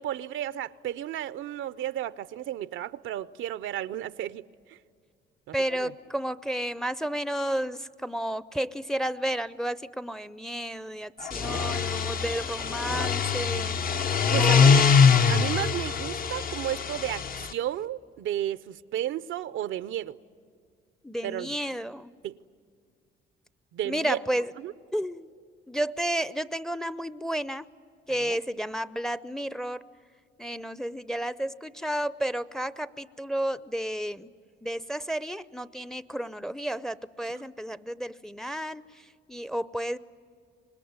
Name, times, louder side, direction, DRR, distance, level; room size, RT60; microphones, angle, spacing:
voice 1, 0.0-4.8 5.5-5.9 14.3-14.8 15.3-17.2 17.5-20.2 21.2-21.5 22.2-22.4 23.7-24.2 24.6-24.7 28.2-28.4 37.3-37.5, right 12 dB, 80° right, 0.6 m, -33 dB
voice 2, 5.5-13.8 14.4-14.7 21.0-22.1 23.8-24.5 24.9-25.3 25.7-27.7 28.1-29.8 30.4-34.3 34.6-40.0, right 1 dB, ahead, 0.5 m, -32 dB
sound 1, 11.2-17.5, left 6 dB, 45° left, 0.7 m, -23 dB
25.5 x 20.5 x 9.5 m
cardioid pair, 90°, 20 cm